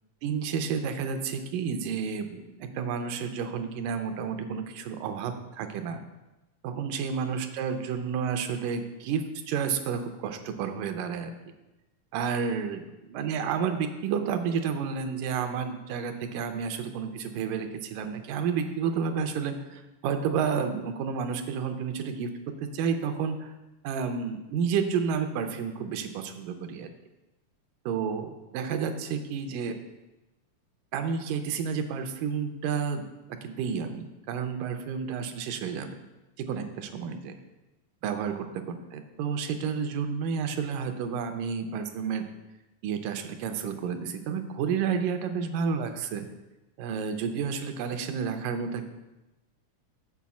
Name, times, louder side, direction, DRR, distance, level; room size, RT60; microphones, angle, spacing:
voice 1, 0.2-6.0 6.6-11.3 12.1-22.3 22.6-23.5 23.8-26.9 27.9-29.7 30.9-33.1 33.4-35.9 36.5-37.3 38.0-38.6 38.9-42.3 42.8-46.3 46.8-48.9, right 6 dB, 85° right, 7 dB, 2.3 m, -31 dB
7.3 x 4.7 x 6.9 m, 1.0 s
omnidirectional pair, 3.8 m